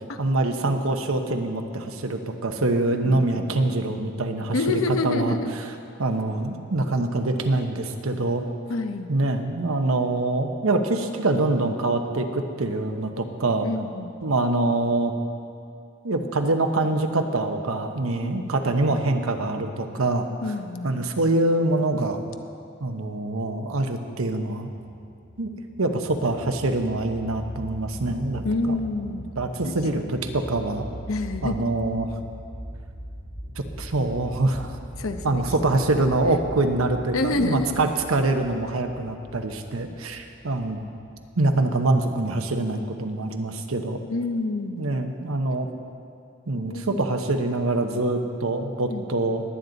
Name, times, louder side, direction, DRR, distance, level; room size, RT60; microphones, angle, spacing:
voice 1, 0.2-5.4 6.0-8.5 9.1-13.7 14.2-15.1 16.0-20.3 20.8-22.2 22.8-24.7 25.4-25.5 25.8-28.8 29.4-30.9 31.4-32.1 33.8-34.7 35.2-40.8 41.4-44.0 44.8-45.7 46.5-49.4, right 2 dB, 85° right, 6 dB, 1.0 m, -25 dB
voice 2, 4.5-5.5 8.7-9.1 13.6-14.2 18.2-18.4 20.4-20.9 28.4-29.3 29.6-29.7 31.1-31.6 35.0-35.4 37.1-37.9 44.1-44.9 45.5-45.7 46.7-47.0 48.9-49.1, left 2 dB, 80° left, 7 dB, 0.8 m, -27 dB
sound 1, 24.7-41.8, equal, 55° left, 2.2 m, -40 dB
20.0 x 9.4 x 4.0 m, 2.4 s
head